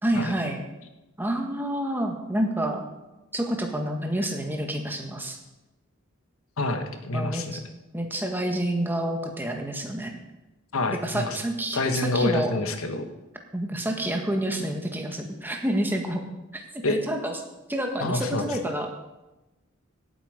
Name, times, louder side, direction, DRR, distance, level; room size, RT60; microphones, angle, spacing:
voice 1, 0.0-0.6 1.2-2.8 3.3-5.4 7.1-7.6 7.9-10.1 11.0-12.6 13.5-16.2 16.5-16.6 16.9-17.4 17.7-18.9, right 1 dB, 10° right, 2 dB, 1.6 m, -28 dB
voice 2, 6.6-7.6 10.7-11.4 11.7-13.1 16.8-17.0 18.0-18.4, left 2 dB, 85° left, 6 dB, 1.5 m, -27 dB
17.0 x 8.6 x 5.2 m, 1.0 s
head